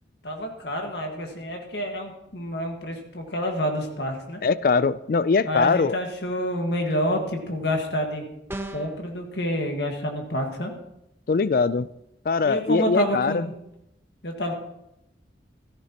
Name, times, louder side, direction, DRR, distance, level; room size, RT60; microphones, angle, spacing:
voice 1, 0.2-4.4 5.4-8.2 8.7-10.7 12.4-13.5 14.2-14.5, equal, 70° left, 3 dB, 1.7 m, -28 dB
voice 2, 4.4-6.0 11.3-11.9 12.3-13.5, left 4 dB, 50° left, 17 dB, 0.3 m, -22 dB
sound 1, 8.5-9.0, right 1 dB, 10° right, 0.6 m, -34 dB
15.5 x 13.5 x 2.9 m, 0.83 s
head